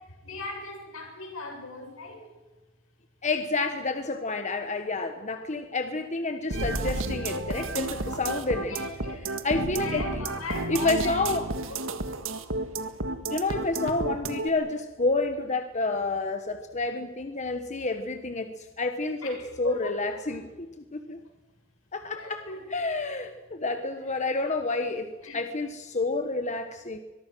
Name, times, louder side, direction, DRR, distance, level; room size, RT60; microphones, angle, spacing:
voice 1, 0.2-2.3 8.7-11.8 19.2-20.4 22.2-22.8 24.1-24.3 25.2-25.4, left 3 dB, 80° left, 2 dB, 7.7 m, -39 dB
voice 2, 3.2-8.7 9.4-10.0 10.7-11.5 13.3-20.5 20.8-21.2 21.9-27.0, left 3 dB, 35° left, 7 dB, 1.3 m, -29 dB
sound 1, 6.5-14.5, right 2 dB, 70° right, 1.8 m, -31 dB
24.0 x 22.5 x 6.3 m, 1.1 s
head